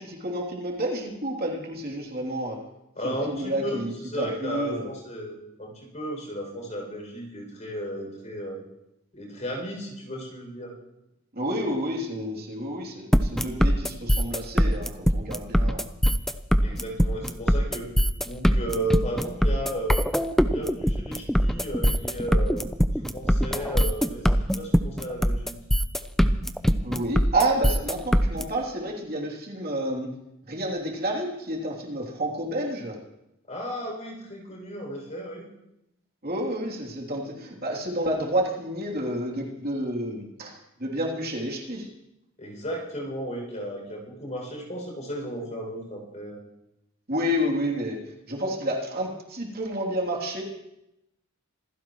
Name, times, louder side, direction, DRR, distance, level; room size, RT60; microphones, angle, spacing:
voice 1, 0.0-2.6 3.0-4.9 11.3-15.8 26.8-30.1 30.5-32.9 36.2-41.9 47.1-48.0 48.3-50.4, right 1 dB, 45° right, -2 dB, 3.1 m, -30 dB
voice 2, 3.0-8.6 9.1-10.7 16.6-17.9 18.2-20.0 20.5-22.7 23.1-25.5 33.5-35.5 42.4-46.4, right 1 dB, 35° left, 0 dB, 6.9 m, -34 dB
sound 1, 13.1-28.4, equal, ahead, 0.6 m, -21 dB
27.0 x 15.5 x 3.2 m, 0.86 s
head